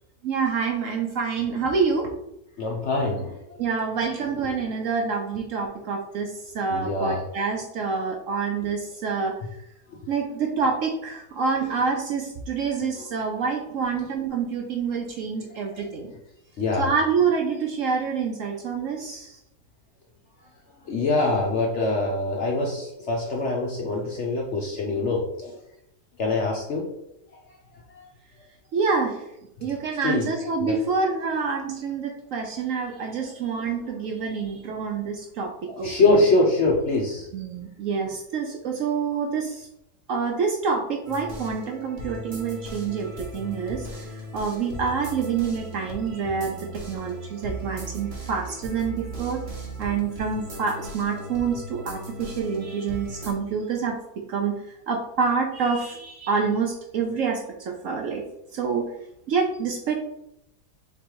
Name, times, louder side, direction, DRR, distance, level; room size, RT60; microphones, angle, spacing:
voice 1, 0.2-2.1 3.6-9.3 10.1-16.1 16.8-19.4 28.7-29.2 29.6-36.2 37.3-39.7 40.1-44.0 44.3-49.4 49.8-54.0 54.3-54.5 54.9-58.2 58.5-58.9 59.3-60.0, right 5 dB, 65° right, 1 dB, 0.8 m, -27 dB
voice 2, 2.6-3.6 4.5-4.6 6.7-7.2 13.0-13.1 15.5-15.8 16.6-16.9 20.9-25.6 26.2-26.9 27.9-28.0 29.6-29.7 30.0-30.3 30.6-30.8 33.2-33.3 35.7-37.3, left 2 dB, 60° left, 0 dB, 0.7 m, -24 dB
sound 1, 41.0-53.3, right 1 dB, 45° right, 1.1 m, -37 dB
3.8 x 3.1 x 4.5 m, 0.83 s
omnidirectional pair, 1.8 m